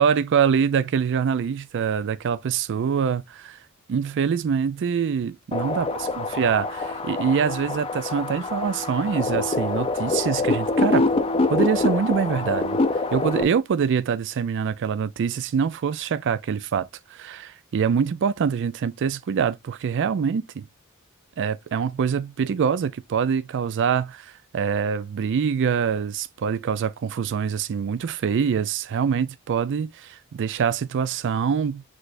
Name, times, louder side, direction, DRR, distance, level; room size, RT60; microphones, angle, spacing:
voice 1, 0.0-3.6 3.9-5.9 6.2-11.1 11.5-12.8 13.1-20.7 21.4-31.8, right 7 dB, 55° right, 0.4 m, -24 dB
sound 1, 5.5-13.4, left 3 dB, 25° left, 0.5 m, -25 dB
6.1 x 3.3 x 2.5 m
head